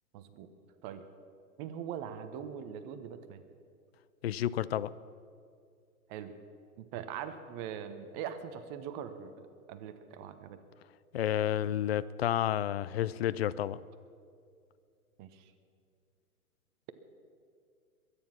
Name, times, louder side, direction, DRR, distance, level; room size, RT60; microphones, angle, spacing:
voice 1, 0.1-0.5 0.8-1.0 1.6-3.4 6.1-6.3 6.8-10.6 15.2-15.5, right 8 dB, 30° right, 10 dB, 1.1 m, -42 dB
voice 2, 4.2-4.9 11.1-13.8, left 11 dB, 45° left, 17 dB, 0.5 m, -30 dB
22.5 x 9.9 x 5.9 m, 2.3 s
hypercardioid pair, 130°, 45 cm